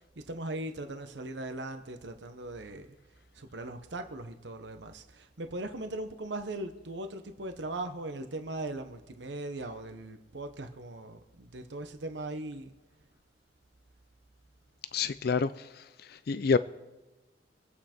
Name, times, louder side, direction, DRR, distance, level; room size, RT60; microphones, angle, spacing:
voice 1, 0.2-2.9 3.3-12.7, right 2 dB, 75° right, 1.0 m, -39 dB
voice 2, 14.9-16.6, left 5 dB, 55° left, 0.4 m, -29 dB
25.5 x 8.6 x 4.4 m
head